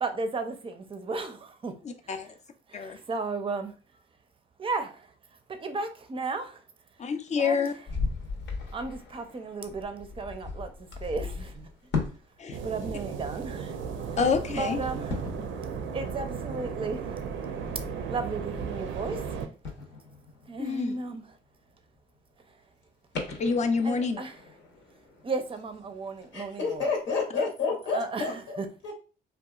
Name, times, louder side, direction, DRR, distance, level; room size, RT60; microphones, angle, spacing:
voice 1, 0.0-1.7 2.0-2.3 2.7-3.7 4.6-6.6 7.4-7.7 8.7-11.7 12.6-14.2 14.6-15.2 15.9-17.2 18.1-19.4 20.5-21.3 22.5-22.6 23.8-24.4 25.2-26.9 27.9-28.7, right 3 dB, 25° right, 0.5 m, -35 dB
voice 2, 1.8-2.3 2.7-3.0 7.0-7.7 12.4-12.6 14.2-14.8 20.6-21.0 23.4-24.2, left 5 dB, 35° left, 0.4 m, -27 dB
sound 1, 7.9-12.3 12.5-13.6 15.1-19.2 19.6-21.6 22.0-22.1 23.1-26.4 26.9-27.0, left 4 dB, 65° left, 0.8 m, -38 dB
sound 2, 12.5-19.5, right 6 dB, 75° right, 0.5 m, -35 dB
voice 3, 26.3-28.6 28.8-28.9, left 4 dB, 85° left, 1.0 m, -30 dB
2.7 x 2.3 x 2.3 m
cardioid pair, 90°, 20 cm